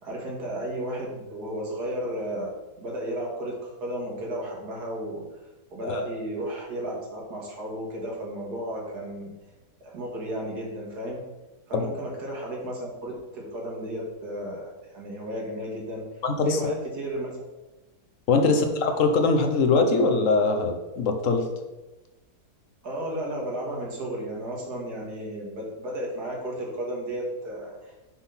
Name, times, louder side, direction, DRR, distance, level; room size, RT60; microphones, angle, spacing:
voice 1, 0.0-2.5 2.8-5.2 5.7-9.3 9.8-11.2 11.7-16.0 16.5-17.4 18.4-18.6 22.8-27.9, right 1 dB, 70° right, -2 dB, 2.1 m, -33 dB
voice 2, 16.2-16.7 18.3-21.4, left 3 dB, 60° left, 4 dB, 1.0 m, -22 dB
6.2 x 3.8 x 5.7 m, 1.1 s
omnidirectional pair, 1.8 m